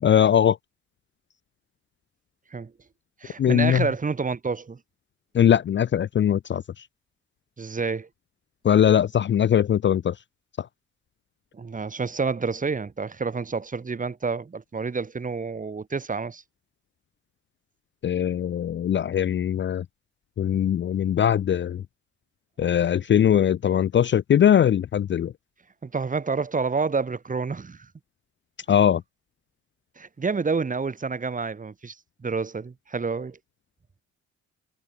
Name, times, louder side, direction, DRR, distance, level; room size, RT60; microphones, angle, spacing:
voice 1, 0.0-0.6 3.4-3.8 5.3-6.6 8.6-10.1 10.6-10.7 18.0-19.8 20.4-21.8 22.6-25.3 28.7-29.0, left 9 dB, 40° left, 0.5 m, -21 dB
voice 2, 3.2-4.8 7.6-8.1 11.5-16.4 25.8-27.9 30.0-33.4, right 4 dB, 25° right, 1.7 m, -29 dB
cardioid pair, 90°, 30 cm